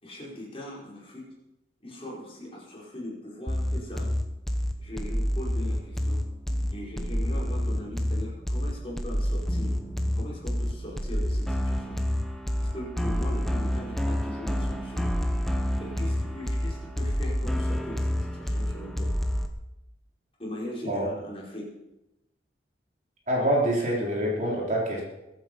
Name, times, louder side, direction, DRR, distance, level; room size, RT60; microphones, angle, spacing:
voice 1, 0.0-1.2 1.8-4.1 4.8-6.2 6.7-9.7 10.2-12.0 12.6-15.0 15.8-19.1 20.4-21.7, left 1 dB, 35° left, -5 dB, 5.2 m, -40 dB
sound 1, 3.5-19.5, equal, ahead, 1.1 m, -28 dB
voice 2, 23.3-25.0, right 1 dB, 45° right, -3 dB, 4.2 m, -26 dB
22.5 x 8.7 x 5.6 m, 0.93 s
head